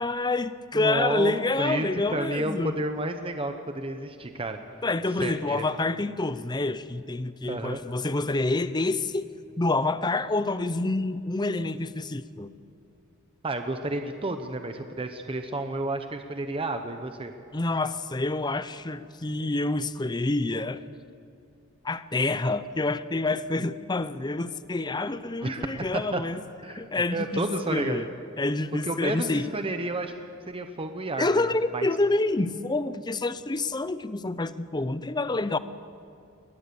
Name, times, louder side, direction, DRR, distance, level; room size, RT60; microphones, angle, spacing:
voice 1, 0.0-2.7 4.8-9.3 9.6-12.5 17.5-20.8 21.8-26.4 26.7-28.1 28.4-29.5 31.2-35.6, left 2 dB, 20° left, 14 dB, 0.6 m, -27 dB
voice 2, 0.7-4.6 5.2-5.6 7.5-7.8 13.4-17.3 25.4-25.7 25.9-26.2 26.6-26.8 27.1-28.1 28.8-30.1 30.5-31.5 31.7-31.9, right 2 dB, 25° right, 7 dB, 0.9 m, -31 dB
21.5 x 19.5 x 7.0 m, 2.5 s
head